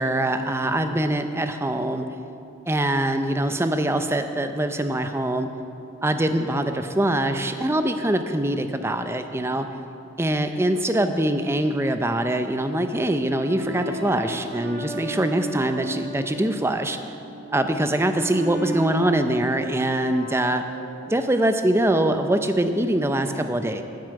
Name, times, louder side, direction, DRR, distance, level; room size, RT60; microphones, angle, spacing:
voice 1, 0.0-2.1 2.7-5.5 6.0-9.7 10.2-17.0 17.5-20.6 21.1-23.8, right 1 dB, 15° right, 8 dB, 0.6 m, -23 dB
Brass instrument, 12.6-16.6 17.1-21.2, right 2 dB, 60° right, 1.8 m, -36 dB
10.0 x 9.3 x 7.8 m, 2.7 s
head